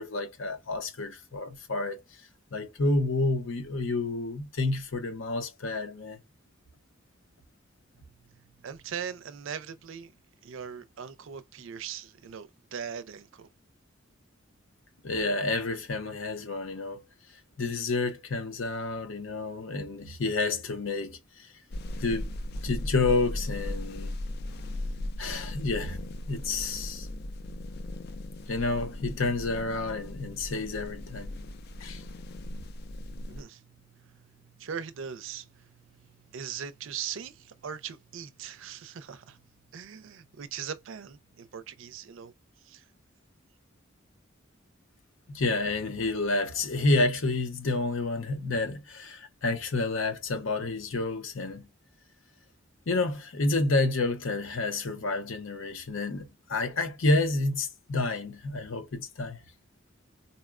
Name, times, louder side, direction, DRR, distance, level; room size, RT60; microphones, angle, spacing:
voice 1, 0.0-2.0 2.5-6.2 15.0-17.0 17.6-21.5 22.0-22.3 22.6-24.2 25.2-26.0 26.3-27.1 28.5-31.4 31.8-32.0 45.3-51.7 52.9-59.4, left 2 dB, 75° left, 0.7 m, -29 dB
voice 2, 8.3-10.1 10.4-13.5 32.8-32.9 33.2-39.4 39.7-42.3 42.6-42.8, right 7 dB, 70° right, 0.4 m, -40 dB
sound 1, 21.7-33.4, left 1 dB, 50° left, 0.3 m, -37 dB
4.0 x 2.1 x 2.4 m
head